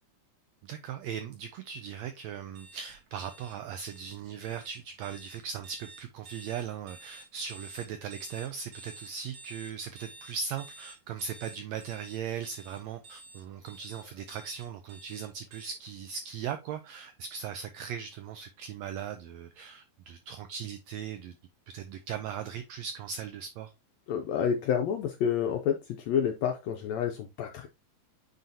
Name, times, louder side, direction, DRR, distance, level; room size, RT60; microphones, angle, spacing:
voice 1, 0.6-21.3 21.7-23.7, right 7 dB, 85° right, 1.5 m, -38 dB
sound 1, 2.5-15.7, right 2 dB, 60° right, 1.9 m, -50 dB
voice 2, 24.1-27.7, left 8 dB, 80° left, 1.6 m, -29 dB
9.0 x 3.9 x 2.7 m
omnidirectional pair, 3.7 m